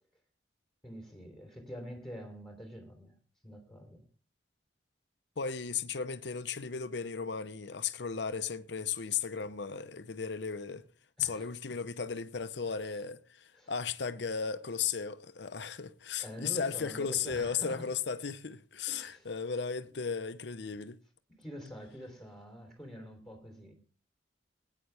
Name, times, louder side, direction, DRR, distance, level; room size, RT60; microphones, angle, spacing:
voice 1, 0.8-3.1 3.4-4.1 11.2-11.5 13.5-13.7 16.2-17.9 18.9-19.3 21.3-23.7, equal, ahead, 3.2 m, -46 dB
voice 2, 5.4-10.8 11.2-21.0, left 6 dB, 70° left, 0.7 m, -35 dB
19.0 x 9.1 x 3.4 m
head